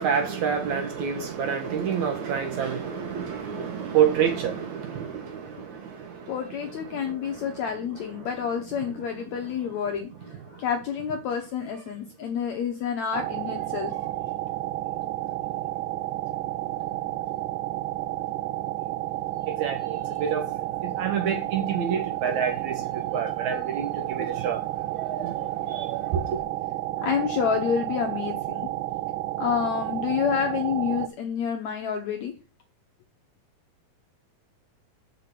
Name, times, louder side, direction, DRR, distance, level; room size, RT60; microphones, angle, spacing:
voice 1, 0.0-5.6 19.6-20.4 20.8-22.8 23.1-24.6 24.9-26.0, right 7 dB, 65° right, 2.0 m, -27 dB
voice 2, 6.3-14.0 27.0-28.7 29.4-32.3, left 7 dB, 75° left, 1.7 m, -28 dB
sound 1, 13.1-31.1, right 15 dB, 85° right, 1.8 m, -31 dB
6.2 x 5.9 x 6.6 m
omnidirectional pair, 4.2 m